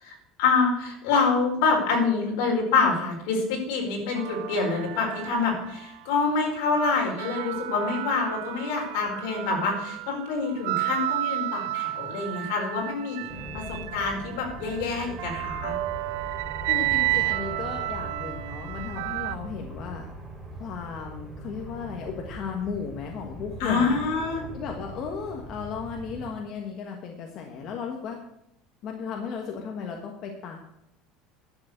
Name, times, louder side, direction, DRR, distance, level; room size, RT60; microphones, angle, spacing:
voice 1, 0.0-13.3 13.5-15.7 23.6-24.5, left 4 dB, 70° left, 0 dB, 4.7 m, -26 dB
sound 1, 4.1-6.0 6.5-19.4, right 18 dB, 75° right, 0.5 m, -32 dB
sound 2, 13.3-26.3, right 1 dB, 5° right, 3.2 m, -41 dB
voice 2, 16.7-20.1 20.6-24.0 24.5-28.2 28.8-30.6, left 6 dB, 35° left, 2 dB, 1.4 m, -35 dB
11.5 x 6.9 x 8.1 m, 0.80 s
cardioid pair, 175°, 0 cm